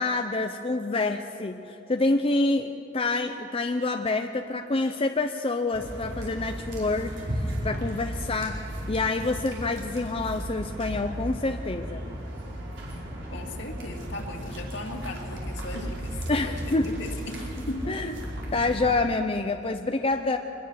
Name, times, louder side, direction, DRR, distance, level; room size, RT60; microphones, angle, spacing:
voice 1, 0.0-12.0 16.3-16.9 17.9-18.1 18.5-20.4, left 3 dB, 30° left, 5 dB, 0.7 m, -27 dB
sound 1, 5.7-18.9, equal, 85° right, 5.2 m, -35 dB
voice 2, 13.3-17.4 17.7-18.2, left 1 dB, 65° left, 1 dB, 2.5 m, -37 dB
24.0 x 21.0 x 6.5 m, 2.8 s
head